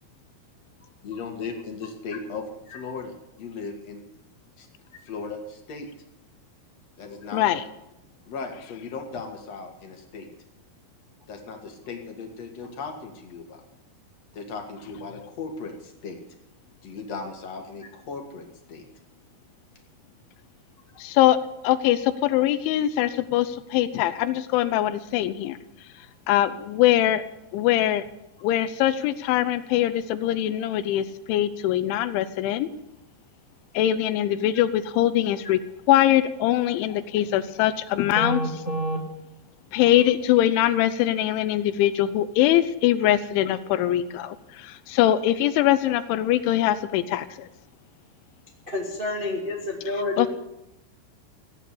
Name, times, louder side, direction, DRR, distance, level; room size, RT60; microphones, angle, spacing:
voice 1, 1.0-2.5 2.7-4.0 4.6-4.7 5.1-5.9 7.0-7.6 8.3-10.3 11.3-13.6 14.3-16.2 16.8-18.8, left 4 dB, 50° left, 3 dB, 2.1 m, -37 dB
voice 2, 7.3-7.6 21.0-21.4 21.6-25.6 26.3-27.2 27.5-28.0 28.4-32.7 33.7-35.6 35.9-38.4 39.7-47.5 50.2-50.3, left 13 dB, 85° left, 13 dB, 3.1 m, -22 dB
voice 3, 38.1-39.0 48.7-50.3, equal, 25° right, -2 dB, 1.2 m, -28 dB
16.0 x 9.0 x 8.3 m, 0.88 s
omnidirectional pair, 5.4 m